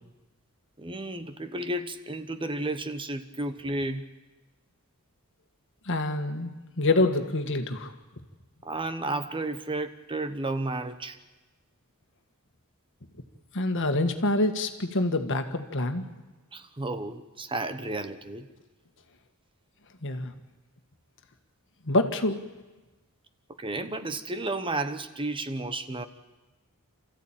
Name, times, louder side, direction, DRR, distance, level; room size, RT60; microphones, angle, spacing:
voice 1, 0.8-4.1 8.6-11.2 16.5-18.5 23.6-26.0, right 2 dB, 25° right, 10 dB, 1.0 m, -32 dB
voice 2, 5.9-7.9 13.5-16.0 20.0-20.3 21.8-22.4, left 2 dB, 60° left, 7 dB, 1.8 m, -26 dB
28.0 x 14.5 x 9.0 m, 1.1 s
head